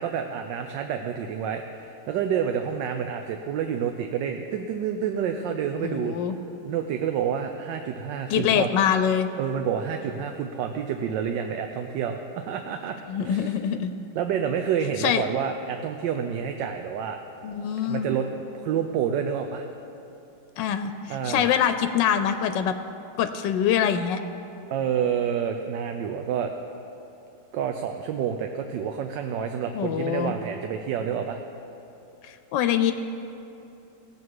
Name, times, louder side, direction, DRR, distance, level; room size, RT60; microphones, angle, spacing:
voice 1, 0.0-6.1 6.6-8.7 9.4-13.0 13.2-13.5 14.1-17.2 17.8-18.3 18.6-19.6 21.1-21.5 24.7-26.5 27.5-31.4, right 8 dB, 85° right, 5 dB, 1.3 m, -28 dB
voice 2, 5.8-6.4 8.3-9.3 13.1-13.9 15.0-15.2 17.4-18.2 20.6-22.7 23.2-24.2 29.7-30.3 32.2-32.9, left 9 dB, 85° left, 9 dB, 1.3 m, -24 dB
17.5 x 7.5 x 4.7 m, 2.8 s
omnidirectional pair, 1.9 m